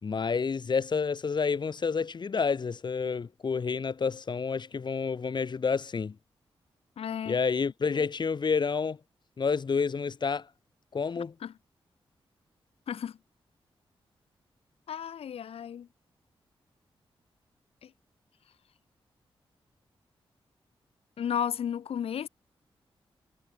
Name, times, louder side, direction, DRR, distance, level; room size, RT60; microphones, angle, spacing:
voice 1, 0.0-6.1 7.3-9.0 9.4-10.5 10.9-11.3, left 5 dB, 50° left, 4.3 m, -29 dB
voice 2, 7.0-7.4 7.9-8.0 11.4-11.5 12.9-13.1 14.9-15.9 17.8-17.9 21.2-22.3, left 8 dB, 90° left, 2.6 m, -33 dB
wide cardioid pair, 100°, 10 cm